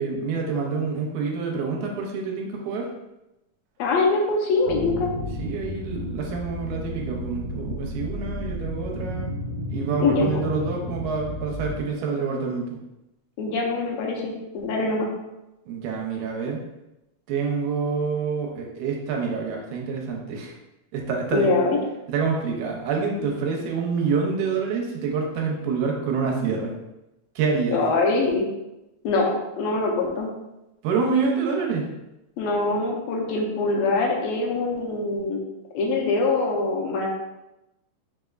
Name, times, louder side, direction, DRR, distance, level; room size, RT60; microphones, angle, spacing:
voice 1, 0.0-2.9 5.4-9.3 9.7-12.8 15.7-16.6 17.3-20.5 20.9-21.5 22.1-26.7 27.4-27.8 30.8-31.9, right 5 dB, 80° right, 0 dB, 2.1 m, -27 dB
voice 2, 3.8-5.1 10.0-10.4 13.4-15.1 21.3-21.8 27.7-28.5 29.0-30.3 32.4-35.4 35.7-37.1, left 3 dB, 75° left, -1 dB, 1.7 m, -23 dB
sound 1, 4.6-11.8, left 1 dB, 55° right, 1.2 m, -32 dB
4.9 x 3.3 x 2.3 m, 0.94 s
omnidirectional pair, 3.5 m